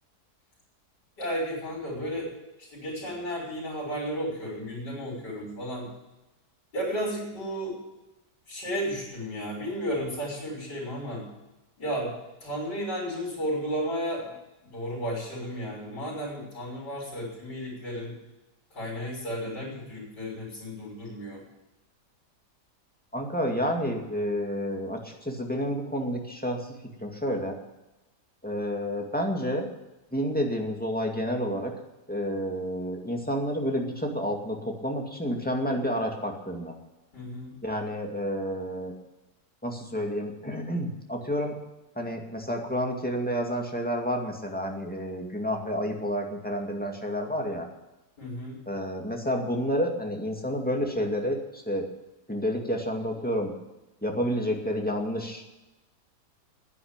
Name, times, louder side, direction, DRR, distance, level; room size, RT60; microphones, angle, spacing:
voice 1, 1.2-2.3 2.6-5.9 6.7-7.8 8.5-11.3 11.8-12.1 12.4-14.3 14.6-18.1 18.7-21.4 37.1-37.5 48.2-48.6, equal, 80° left, -8 dB, 5.7 m, -33 dB
voice 2, 23.1-27.5 28.4-29.7 30.1-31.7 32.1-36.7 37.6-38.9 39.6-41.5 42.0-47.7 48.7-51.8 52.3-53.5 54.0-55.5, equal, 5° left, 1 dB, 2.1 m, -30 dB
11.0 x 10.0 x 8.9 m, 1.0 s
omnidirectional pair, 1.8 m